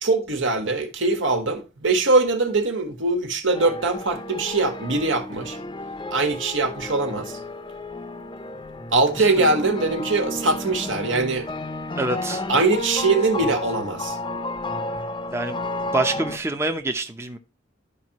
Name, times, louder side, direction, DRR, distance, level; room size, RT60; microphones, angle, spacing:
voice 1, 0.0-5.6 6.1-7.3 8.9-11.5 12.5-14.2, right 3 dB, 80° right, 1.6 m, -22 dB
sound 1, 3.5-16.4, left 2 dB, 25° left, 0.7 m, -32 dB
voice 2, 12.0-12.4 15.3-15.6 15.9-17.4, right 2 dB, 15° right, 0.7 m, -26 dB
12.5 x 5.1 x 2.9 m
head